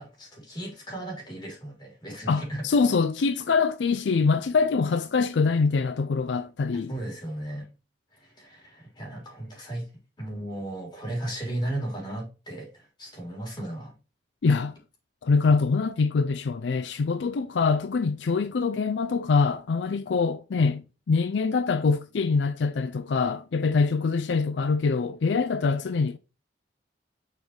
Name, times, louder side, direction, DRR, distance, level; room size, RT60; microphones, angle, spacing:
voice 1, 0.0-2.6 6.9-7.7 8.1-9.9 10.2-13.9, right 1 dB, 25° left, 3.6 m, -35 dB
voice 2, 2.3-6.9 14.4-14.7 15.2-26.2, left 4 dB, 75° left, 0.4 m, -24 dB
6.7 x 4.6 x 3.3 m
head